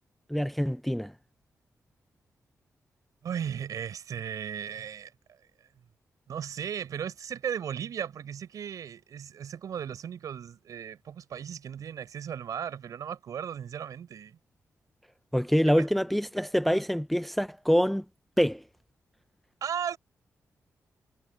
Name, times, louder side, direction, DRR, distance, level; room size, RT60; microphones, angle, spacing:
voice 1, 0.3-1.1 15.3-18.0 18.4-18.6, equal, ahead, 0.5 m, -25 dB
voice 2, 3.2-5.1 6.3-14.4 15.8-15.9 19.6-20.0, right 8 dB, 80° right, 5.6 m, -36 dB
wide cardioid pair, 125°, 6 cm